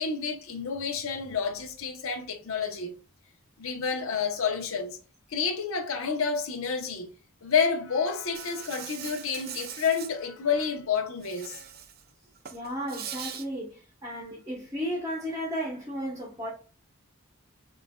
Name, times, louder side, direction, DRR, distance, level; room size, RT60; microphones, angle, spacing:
voice 1, 0.0-2.9 3.6-5.0 5.3-7.1 7.4-11.6, left 6 dB, 75° left, 0.8 m, -29 dB
Insect, 8.3-10.1 11.2-12.0 12.4-13.4, right 8 dB, 45° right, 0.5 m, -41 dB
voice 2, 12.5-16.5, equal, 15° right, 0.8 m, -34 dB
5.6 x 2.5 x 2.2 m
head